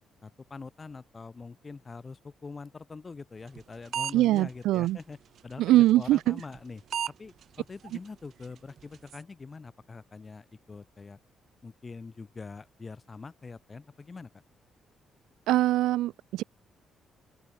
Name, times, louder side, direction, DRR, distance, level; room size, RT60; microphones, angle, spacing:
voice 1, 0.2-5.2 5.4-6.8 7.2-11.2 11.6-14.3, left 4 dB, 30° left, 3.9 m, -44 dB
sound 1, 3.6-3.7 3.9-4.4 4.9-5.0 6.4-6.6 6.9-7.1 7.4-7.5 7.9-8.0 8.4-8.5 8.8-9.2, right 9 dB, 65° right, 1.3 m, -32 dB
voice 2, 4.1-5.0 5.6-6.4 15.5-16.4, right 15 dB, 90° right, 0.3 m, -23 dB
open air
cardioid pair, 90°, 0 cm